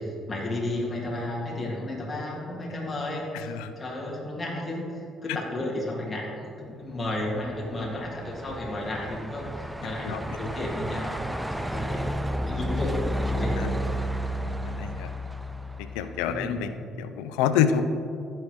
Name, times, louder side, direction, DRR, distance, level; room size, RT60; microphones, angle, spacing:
voice 1, 0.0-9.5 9.8-11.2 11.5-13.0 13.3-13.8 16.3-16.6, left 1 dB, 30° left, -3 dB, 2.1 m, -33 dB
voice 2, 3.4-3.7 10.0-10.2 13.6-13.7 14.4-15.1 15.8-17.8, left 9 dB, 80° left, 10 dB, 0.4 m, -28 dB
Truck, 7.2-16.5, equal, 10° right, 0.4 m, -32 dB
14.5 x 6.4 x 3.1 m, 2.6 s
hypercardioid pair, 55°, 0 cm